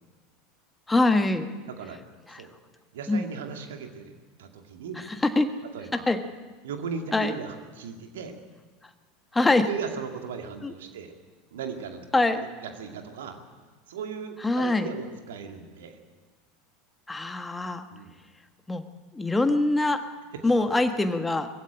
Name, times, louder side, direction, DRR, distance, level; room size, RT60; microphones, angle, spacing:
voice 1, 0.9-1.5 2.3-2.4 3.1-3.2 5.2-5.5 6.1-6.2 7.1-7.3 9.3-9.7 10.6-10.7 12.1-12.4 14.4-14.9 17.1-17.9 18.7-18.8 19.1-20.0 20.4-21.5, left 2 dB, 10° left, 8 dB, 1.5 m, -23 dB
voice 2, 1.7-2.0 2.3-2.5 2.9-4.1 4.4-5.1 5.7-6.0 6.6-8.3 9.5-11.1 11.5-12.0 12.4-13.4 13.9-16.0 17.9-18.1 20.3-20.7, right 6 dB, 65° right, 4 dB, 2.4 m, -37 dB
20.5 x 15.5 x 8.9 m, 1.4 s
figure-of-eight pair, 80°, 0 cm